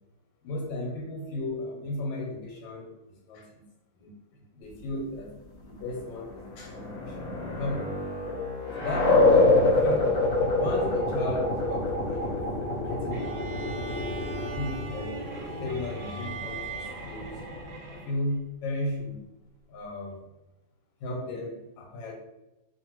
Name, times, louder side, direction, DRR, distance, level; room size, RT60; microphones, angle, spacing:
voice 1, 0.4-2.9 3.3-3.6 4.0-4.1 4.5-5.3 5.6-7.2 7.5-7.9 8.8-10.2 10.6-12.4 12.9-13.2 14.3-17.4 17.9-19.2 19.7-20.3 21.0-22.1, left 2 dB, 85° left, 0 dB, 1.3 m, -35 dB
sound 1, 6.4-17.8, left 2 dB, 55° left, 1.0 m, -26 dB
sound 2, 13.1-18.4, right 3 dB, 80° right, 1.3 m, -41 dB
2.8 x 2.5 x 2.8 m, 0.96 s
omnidirectional pair, 2.0 m